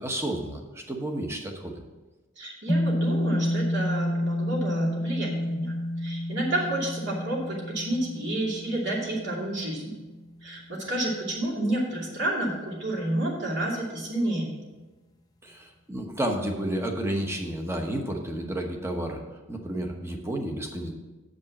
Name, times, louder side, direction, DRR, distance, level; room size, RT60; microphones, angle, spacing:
voice 1, 0.0-1.8 15.4-19.2 19.5-20.9, right 1 dB, 15° right, 2 dB, 1.0 m, -31 dB
voice 2, 2.4-9.9 10.4-14.5, right 1 dB, 60° right, -3 dB, 2.6 m, -30 dB
sound 1, 2.7-11.1, equal, 20° left, 0.7 m, -30 dB
7.7 x 5.3 x 7.2 m, 1.2 s
head